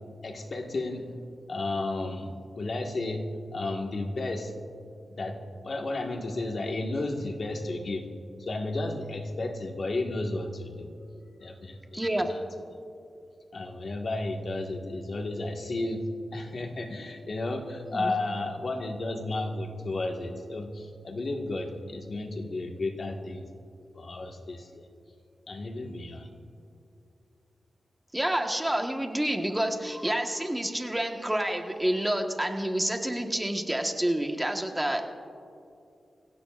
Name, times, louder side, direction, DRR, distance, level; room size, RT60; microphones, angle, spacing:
voice 1, 0.2-1.1 1.5-4.5 5.1-5.4 5.6-8.0 8.4-10.9 11.4-12.4 13.5-23.5 23.9-24.9 25.5-26.3, left 2 dB, 55° left, 2 dB, 1.7 m, -33 dB
voice 2, 11.9-12.3 17.9-18.1 28.1-35.0, right 1 dB, 10° right, 3 dB, 1.4 m, -28 dB
25.0 x 16.5 x 2.5 m, 2.5 s
cardioid pair, 70°, 0 cm